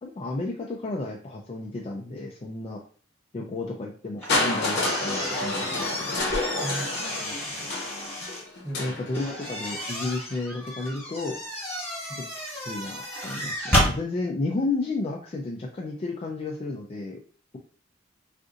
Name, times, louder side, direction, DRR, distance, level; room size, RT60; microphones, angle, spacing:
voice 1, 0.0-2.8 3.3-6.2 8.8-11.4 12.3-17.2, left 2 dB, 30° left, 0 dB, 0.3 m, -32 dB
sound 1, 4.2-8.4 9.1-14.0, equal, 10° left, 1.2 m, -31 dB
Crushing, 4.3-10.2 11.2-11.3, left 2 dB, 60° left, 0.8 m, -30 dB
voice 2, 6.6-7.7 8.6-9.0 12.1-12.3, right 1 dB, 5° right, -9 dB, 0.7 m, -39 dB
3.7 x 2.5 x 2.5 m, 0.43 s
head